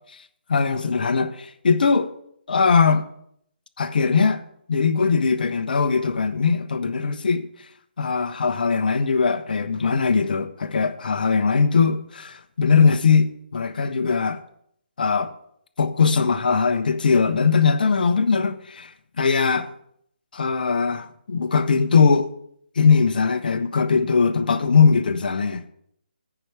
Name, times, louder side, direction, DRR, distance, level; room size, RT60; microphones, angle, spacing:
voice 1, 0.5-2.1 2.5-3.1 3.8-4.4 4.7-7.5 8.0-14.4 15.0-15.3 15.8-18.9 19.2-19.7 20.3-22.3 22.8-25.7, left 5 dB, 55° left, 0.8 m, -20 dB
9.1 x 4.8 x 7.2 m
figure-of-eight pair, 150°, 6 cm